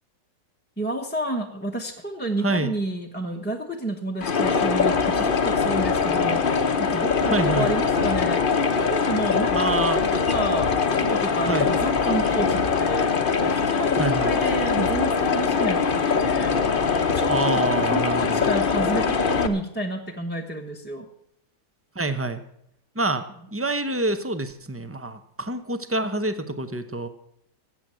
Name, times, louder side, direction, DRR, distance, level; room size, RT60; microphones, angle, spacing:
voice 1, 0.8-8.4 8.8-16.9 17.1-21.1, right 1 dB, 10° left, 0 dB, 0.8 m, -30 dB
sound 1, 4.2-19.5, left 5 dB, 40° left, 1.0 m, -22 dB
voice 2, 7.2-7.7 9.5-10.0 11.5-11.7 14.0-14.3 17.3-18.4 21.9-22.4 22.9-27.1, right 2 dB, 15° right, 10 dB, 0.5 m, -26 dB
15.0 x 8.1 x 7.6 m, 0.75 s
omnidirectional pair, 1.7 m